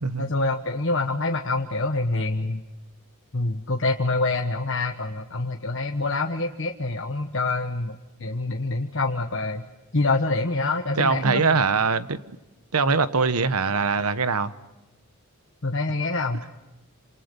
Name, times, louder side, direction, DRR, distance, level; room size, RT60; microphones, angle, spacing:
voice 1, 0.2-2.6 3.3-7.9 8.2-9.6 9.9-11.5 15.6-16.4, left 2 dB, 55° left, 1.3 m, -26 dB
voice 2, 11.0-12.2 12.7-14.5, right 4 dB, 80° right, 1.2 m, -22 dB
28.5 x 28.0 x 5.4 m
head